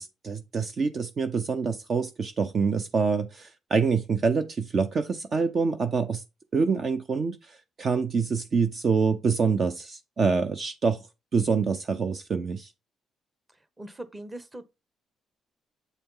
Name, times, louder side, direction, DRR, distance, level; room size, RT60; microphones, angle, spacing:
voice 1, 0.0-6.2 6.5-7.4 7.8-11.0 11.3-12.7, right 5 dB, 45° right, 0.7 m, -26 dB
voice 2, 13.8-14.6, right 1 dB, 20° right, 1.1 m, -40 dB
8.1 x 4.2 x 3.8 m
cardioid pair, 90°, 0 cm